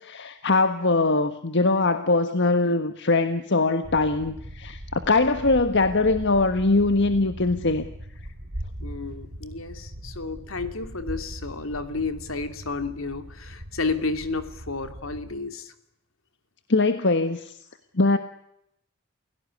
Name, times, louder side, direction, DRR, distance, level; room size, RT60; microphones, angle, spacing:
voice 1, 0.0-7.9 16.7-17.6 17.9-18.2, left 3 dB, 60° left, 10 dB, 1.5 m, -22 dB
sound 1, 3.8-15.4, equal, 70° right, 3.2 m, -40 dB
voice 2, 8.8-15.7, left 3 dB, 75° left, 10 dB, 2.8 m, -31 dB
29.0 x 17.5 x 9.8 m, 0.78 s
head